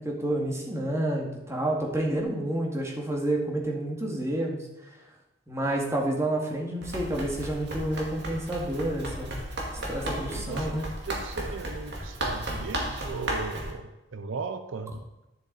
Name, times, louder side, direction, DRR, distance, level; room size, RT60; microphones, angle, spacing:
voice 1, 0.0-4.6 5.5-9.4 9.9-10.9, right 1 dB, 15° right, -1 dB, 2.0 m, -29 dB
Run, 6.8-13.7, right 1 dB, 60° right, 2.1 m, -34 dB
voice 2, 10.1-10.8 11.1-15.0, right 4 dB, 80° right, 9 dB, 0.7 m, -37 dB
11.5 x 7.0 x 4.2 m, 0.98 s
head